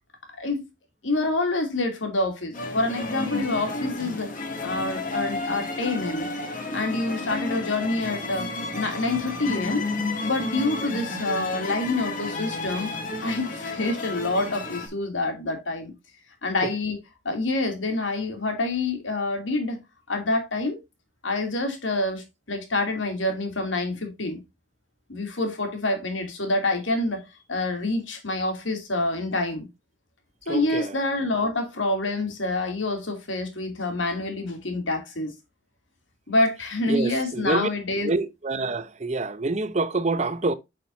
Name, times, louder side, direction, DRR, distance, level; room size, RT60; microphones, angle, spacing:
voice 1, 1.0-4.3 4.6-6.3 6.7-9.9 10.2-12.9 13.2-15.9 16.4-17.0 17.2-19.8 20.1-20.8 21.2-24.4 25.1-27.2 27.5-29.7 30.5-35.3 36.3-38.1, left 2 dB, 85° left, 2.7 m, -27 dB
sound 1, 2.5-14.9, left 2 dB, 45° left, 2.4 m, -32 dB
voice 2, 30.5-31.0 36.9-37.7 38.0-40.5, right 3 dB, 35° right, 0.7 m, -26 dB
8.3 x 6.3 x 2.6 m
head